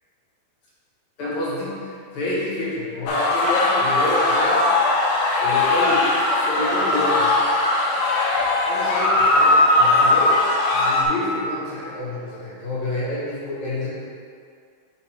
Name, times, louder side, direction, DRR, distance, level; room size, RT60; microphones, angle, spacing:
voice 1, 1.2-4.6 5.4-6.0 6.4-7.4 8.7-10.4 10.7-13.9, left 1 dB, 55° left, -8 dB, 2.3 m, -28 dB
sound 1, 3.1-11.1, left 2 dB, 85° left, 2.8 m, -19 dB
5.3 x 5.2 x 4.6 m, 2.3 s
omnidirectional pair, 4.9 m